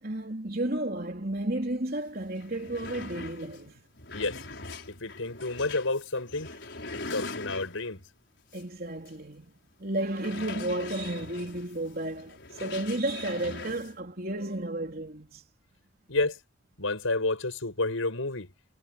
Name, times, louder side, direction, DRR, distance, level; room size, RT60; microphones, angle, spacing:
voice 1, 0.0-3.9 8.5-9.5 9.8-15.4, right 1 dB, 45° right, 3.9 m, -32 dB
sound 1, 1.9-2.0 2.3-8.0 8.5-8.7 9.1-9.2 10.1-13.9, left 3 dB, 60° left, 5.8 m, -42 dB
voice 2, 4.1-4.5 4.9-6.5 6.9-8.0 16.1-16.4 16.8-18.5, left 2 dB, 90° left, 6.2 m, -30 dB
head